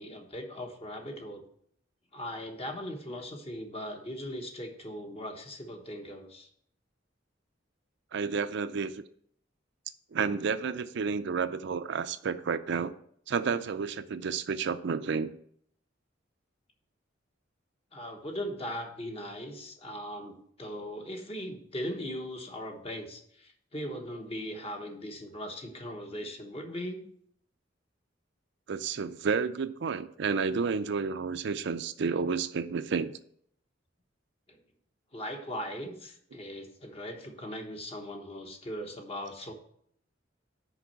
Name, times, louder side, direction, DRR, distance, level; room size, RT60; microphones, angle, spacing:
voice 1, 0.0-1.4 2.1-6.5 17.9-27.1 34.5-34.6 35.1-39.5, equal, 30° left, 3 dB, 1.2 m, -39 dB
voice 2, 8.1-9.0 10.1-12.9 13.3-15.3 28.7-33.1, right 5 dB, 65° right, 11 dB, 0.5 m, -31 dB
6.1 x 5.3 x 7.0 m, 0.66 s
head